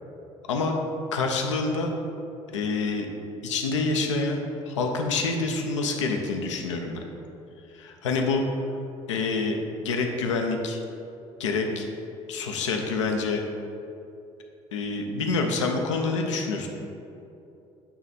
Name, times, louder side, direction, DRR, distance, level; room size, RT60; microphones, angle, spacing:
voice 1, 1.1-1.9 2.5-3.1 3.4-7.0 7.7-8.4 9.1-9.6 9.8-10.8 11.4-11.9 12.3-13.4 14.7-16.7, left 3 dB, 80° left, 3 dB, 0.6 m, -27 dB
8.4 x 3.2 x 4.1 m, 2.8 s
figure-of-eight pair, 55°, 15 cm